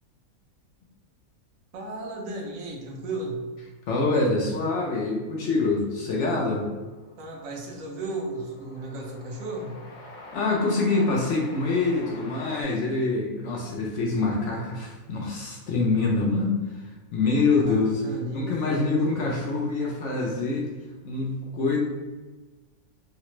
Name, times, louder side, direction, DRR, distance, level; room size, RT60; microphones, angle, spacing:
voice 1, 1.7-3.4 7.2-9.8 17.5-19.4, right 2 dB, 70° right, 0 dB, 1.0 m, -35 dB
voice 2, 3.9-6.7 10.3-18.0 18.3-20.7 21.0-21.8, left 3 dB, 65° left, -2 dB, 0.8 m, -25 dB
Train, 5.2-5.3 5.5-12.6, left 2 dB, 85° left, 0.4 m, -46 dB
3.1 x 2.1 x 2.9 m, 1.2 s
omnidirectional pair, 1.5 m